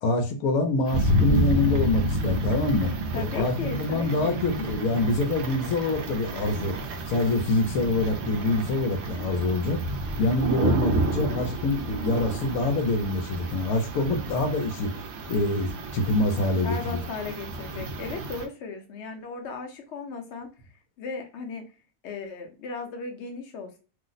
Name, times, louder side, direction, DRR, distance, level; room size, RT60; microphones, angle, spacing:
voice 1, 0.0-6.7 7.1-9.8 10.2-17.0, left 2 dB, 85° left, 6 dB, 1.1 m, -25 dB
sound 1, 0.9-18.5, right 1 dB, 65° right, 0.7 m, -30 dB
voice 2, 3.1-4.4 16.5-20.5 21.0-21.6 22.0-23.8, left 4 dB, 60° left, 4 dB, 0.9 m, -36 dB
2.7 x 2.0 x 3.9 m, 0.34 s
omnidirectional pair, 1.5 m